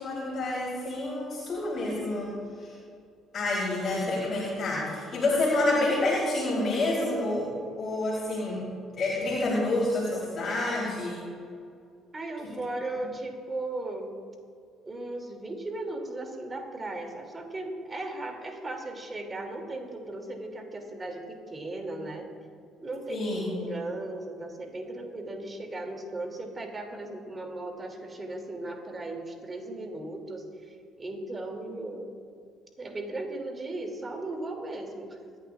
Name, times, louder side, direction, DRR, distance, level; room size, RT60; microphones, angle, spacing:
voice 1, 0.0-2.8 3.3-8.7 9.0-11.2 23.1-23.6, left 2 dB, 40° left, -6 dB, 3.5 m, -28 dB
voice 2, 12.1-14.1 14.8-22.3 22.8-32.1 32.8-35.2, right 2 dB, 25° right, 3 dB, 2.7 m, -37 dB
25.5 x 11.0 x 2.5 m, 2.3 s
hypercardioid pair, 50°, 0 cm